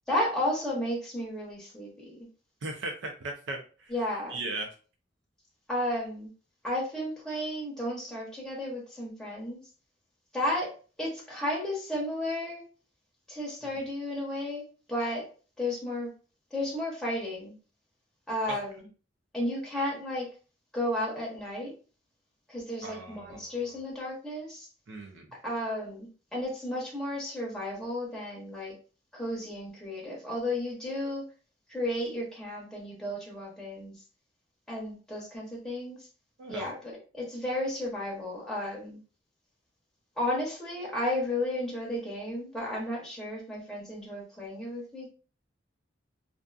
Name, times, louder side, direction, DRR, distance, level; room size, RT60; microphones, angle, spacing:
voice 1, 0.1-2.3 3.9-4.4 5.7-6.3 6.6-9.6 10.3-10.7 11.0-12.6 13.3-14.6 14.9-15.3 15.6-16.1 16.5-17.5 18.3-18.9 19.3-20.3 20.7-21.7 22.5-24.7 25.4-28.7 29.1-31.2 31.7-33.9 34.7-36.1 36.5-39.0 40.2-45.1, left 1 dB, 5° left, -4 dB, 0.8 m, -33 dB
voice 2, 2.6-3.9 4.3-4.7 18.5-18.6 22.8-23.8 24.9-25.3 36.4-36.7, right 2 dB, 70° right, 3 dB, 0.4 m, -38 dB
2.5 x 2.5 x 2.3 m, 0.37 s
head